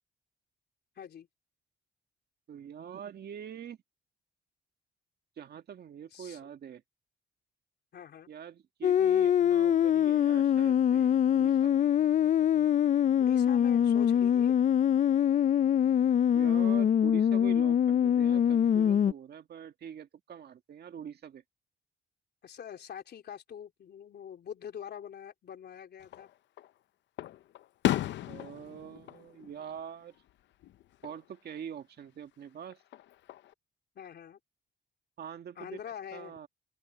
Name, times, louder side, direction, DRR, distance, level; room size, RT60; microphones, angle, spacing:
voice 1, 1.0-1.3 6.1-6.4 7.9-8.3 13.2-14.6 22.4-26.3 34.0-34.4 35.6-36.4, left 8 dB, 65° left, 3.8 m, -44 dB
voice 2, 2.5-3.8 5.4-6.8 8.3-11.9 16.3-21.4 28.3-30.2 31.0-32.8 35.2-35.8 36.1-36.5, right 8 dB, 65° right, 1.9 m, -44 dB
sound 1, 8.8-19.1, left 9 dB, 45° left, 0.4 m, -24 dB
Fireworks, 26.0-26.7 27.2-30.3 30.6-31.2 32.7-33.5, left 13 dB, 85° left, 0.6 m, -35 dB
open air
cardioid pair, 100°, 18 cm